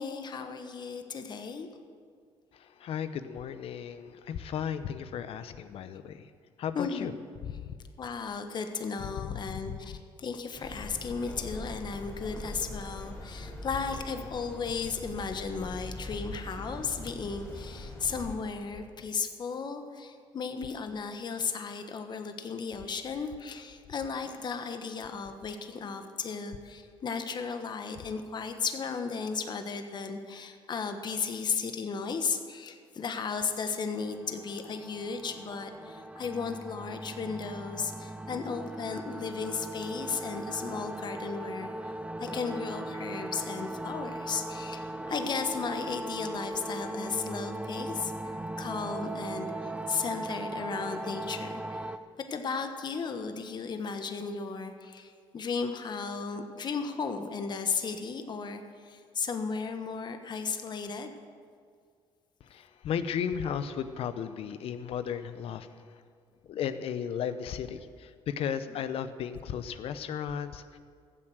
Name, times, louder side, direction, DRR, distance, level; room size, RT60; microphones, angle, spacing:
voice 1, 0.0-1.7 6.7-7.1 8.0-41.9 42.2-61.1, left 5 dB, 45° left, 7 dB, 1.3 m, -35 dB
voice 2, 2.5-6.3 6.6-7.1 7.6-7.7 9.2-9.3 9.7-9.8 62.5-65.7 66.5-70.8, left 8 dB, 65° left, 12 dB, 0.8 m, -35 dB
sound 1, 10.5-18.4, left 1 dB, 25° left, 4.0 m, -42 dB
sound 2, 33.9-52.0, right 1 dB, 10° right, 0.6 m, -38 dB
14.5 x 7.6 x 7.9 m, 2.1 s
cardioid pair, 85°, 11 cm